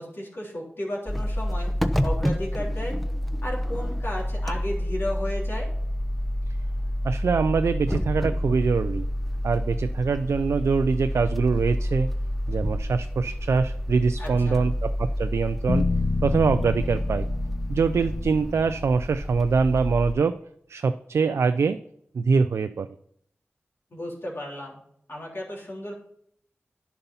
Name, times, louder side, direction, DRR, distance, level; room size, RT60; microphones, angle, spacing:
voice 1, 0.0-1.7 2.0-3.0 3.4-5.7 14.2-14.7 23.9-24.8 25.1-25.9, left 1 dB, 60° left, -3 dB, 3.7 m, -34 dB
sound 1, 1.1-20.1, equal, ahead, 0.8 m, -29 dB
voice 2, 7.0-9.1 9.4-12.1 12.5-15.9 16.2-17.3 17.7-20.4 20.7-21.8 22.1-22.9, right 5 dB, 85° right, 10 dB, 0.4 m, -24 dB
sound 2, 15.7-19.9, left 3 dB, 40° left, 0.4 m, -29 dB
10.5 x 5.7 x 5.5 m, 0.69 s
cardioid pair, 50°, 5 cm